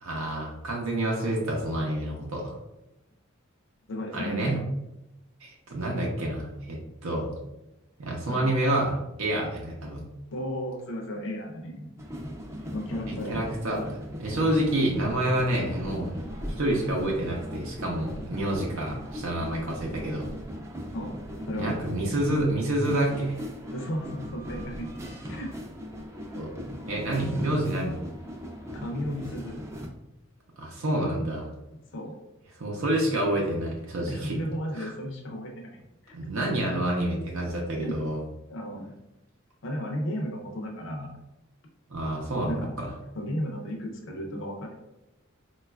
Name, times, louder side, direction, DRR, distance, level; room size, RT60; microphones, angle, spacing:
voice 1, 0.0-2.6 4.1-4.6 5.4-7.3 8.0-8.9 9.2-10.0 13.1-13.8 14.2-16.1 16.6-20.3 21.6-23.4 26.3-26.5 26.9-28.0 30.6-31.5 32.6-34.4 34.8-34.9 36.1-38.2 41.9-42.9, right 1 dB, 80° right, -2 dB, 0.6 m, -28 dB
voice 2, 3.9-4.6 8.3-8.5 10.3-11.9 12.7-13.4 20.9-21.2 21.5-21.8 23.7-24.9 25.3-25.6 28.7-29.6 31.9-32.2 34.1-35.8 36.0-36.2 37.8-38.0 38.5-38.9 39.6-41.1 42.5-42.7 43.2-44.7, equal, 65° left, 1 dB, 0.5 m, -34 dB
sound 1, 12.0-29.9, equal, 15° right, 0.3 m, -39 dB
3.9 x 2.3 x 2.3 m, 0.94 s
head